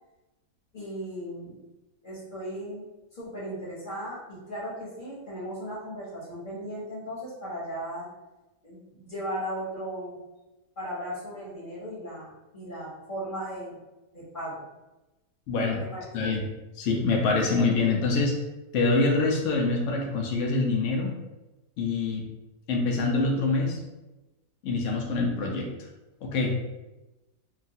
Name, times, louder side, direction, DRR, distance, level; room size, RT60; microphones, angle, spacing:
voice 1, 0.7-1.6 2.0-8.1 8.6-10.2 10.8-13.8 14.1-14.6 15.9-16.3, equal, 40° left, -8 dB, 0.9 m, -37 dB
voice 2, 15.5-15.8 16.1-16.4 16.8-18.3 18.7-21.2 21.8-22.2 22.7-23.8 24.6-25.7 26.2-26.5, left 3 dB, 65° left, -1 dB, 0.7 m, -25 dB
3.1 x 2.3 x 2.6 m, 1.0 s
omnidirectional pair, 1.8 m